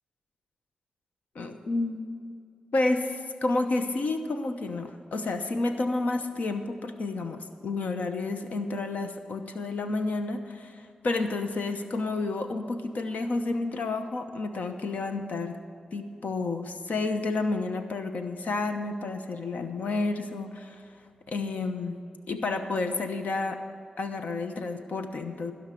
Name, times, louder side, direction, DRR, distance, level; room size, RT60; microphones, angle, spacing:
voice 1, 1.3-2.1 2.7-15.6 15.9-20.9 21.3-23.6 24.0-25.5, left 3 dB, 70° left, 6 dB, 1.0 m, -30 dB
16.0 x 5.6 x 8.5 m, 2.2 s
cardioid pair, 70°, 3 cm